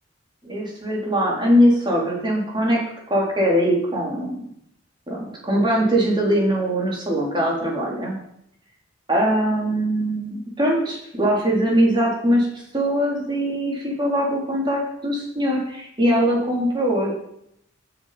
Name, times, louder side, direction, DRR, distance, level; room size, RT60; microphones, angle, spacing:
voice 1, 0.4-2.8 3.1-4.4 5.1-8.1 9.1-12.5 12.7-17.2, equal, 25° right, -3 dB, 3.9 m, -21 dB
14.5 x 7.9 x 5.3 m, 0.74 s
head